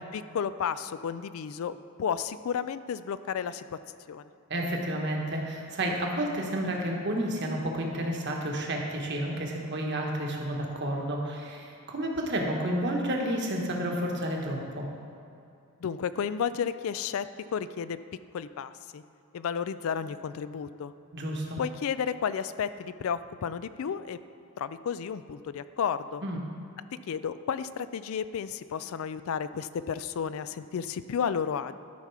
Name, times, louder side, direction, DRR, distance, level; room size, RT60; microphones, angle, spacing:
voice 1, 0.0-3.8 4.1-4.3 15.8-18.0 18.3-19.0 19.3-20.9 21.6-24.2 24.6-26.2 27.1-31.7, left 7 dB, 65° left, 13 dB, 0.3 m, -32 dB
voice 2, 4.5-14.9 21.1-21.6 26.2-26.4, right 1 dB, 50° right, 0 dB, 1.3 m, -31 dB
12.5 x 5.8 x 4.7 m, 2.6 s
head